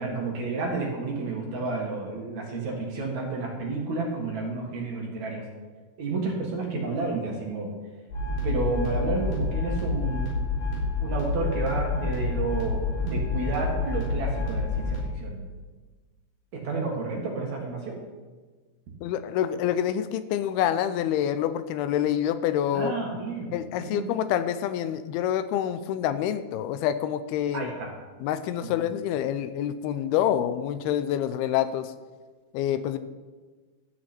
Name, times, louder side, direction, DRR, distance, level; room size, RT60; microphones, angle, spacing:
voice 1, 0.0-5.4 6.0-7.7 8.4-10.3 11.0-15.4 16.5-18.0 22.7-24.2 27.5-27.9 28.8-28.9, right 3 dB, 55° right, -1 dB, 2.7 m, -31 dB
sound 1, 8.1-15.0, left 3 dB, 70° left, 5.8 m, -28 dB
voice 2, 19.0-22.9 23.5-27.7 28.2-31.9 32.5-33.0, left 10 dB, 90° left, 12 dB, 2.5 m, -27 dB
13.0 x 9.4 x 4.4 m, 1.3 s
omnidirectional pair, 4.5 m